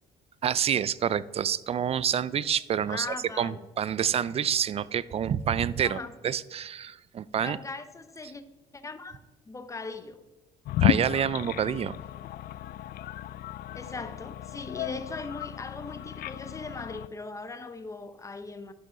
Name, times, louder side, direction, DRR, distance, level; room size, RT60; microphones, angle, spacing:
voice 1, 0.4-3.1 3.4-7.6 10.8-12.0, right 8 dB, 35° right, 0.4 m, -28 dB
voice 2, 2.8-3.6 5.8-6.1 7.4-8.4 8.7-9.2 9.5-10.2 13.7-18.7, left 3 dB, 20° left, 0.9 m, -39 dB
sound 1, 10.6-17.1, left 13 dB, 65° left, 0.4 m, -32 dB
11.0 x 7.6 x 3.9 m
cardioid pair, 110°, 17 cm